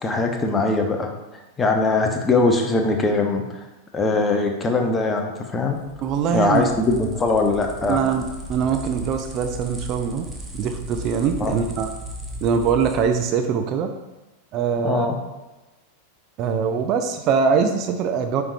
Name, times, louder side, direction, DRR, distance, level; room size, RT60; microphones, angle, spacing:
voice 1, 0.0-3.6 3.9-5.8 6.3-8.0 11.4-11.5 14.8-15.2, left 3 dB, 15° left, 3 dB, 0.9 m, -21 dB
sound 1, 5.7-13.3, right 1 dB, 10° right, 1.2 m, -36 dB
voice 2, 6.0-6.7 7.9-10.3 10.5-11.9 12.4-13.9 14.5-15.1 16.4-18.4, right 6 dB, 35° right, 6 dB, 0.5 m, -22 dB
8.9 x 4.8 x 2.7 m, 1.1 s
figure-of-eight pair, 90°, 0 cm